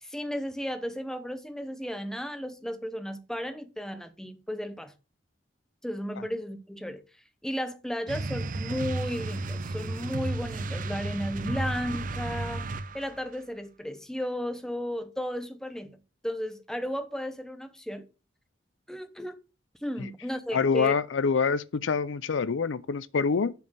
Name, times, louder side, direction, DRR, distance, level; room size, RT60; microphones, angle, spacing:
voice 1, 0.0-4.9 5.8-7.0 7.4-12.7 12.9-16.0 16.2-18.1 18.9-19.4 19.8-20.9, equal, 5° left, 0.6 m, -34 dB
sound 1, 8.1-13.2, right 2 dB, 45° right, 0.5 m, -33 dB
voice 2, 20.5-23.5, left 5 dB, 80° left, 0.5 m, -26 dB
7.0 x 4.2 x 6.5 m
head